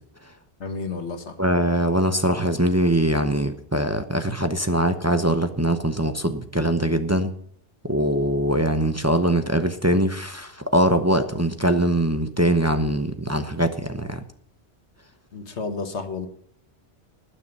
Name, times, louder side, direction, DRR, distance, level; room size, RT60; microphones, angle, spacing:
voice 1, 0.6-1.3 15.3-16.3, left 4 dB, 90° left, 7 dB, 1.8 m, -31 dB
voice 2, 1.4-7.3 7.9-14.2, right 1 dB, 15° right, 7 dB, 0.8 m, -22 dB
19.5 x 6.6 x 5.4 m, 0.65 s
omnidirectional pair, 1.1 m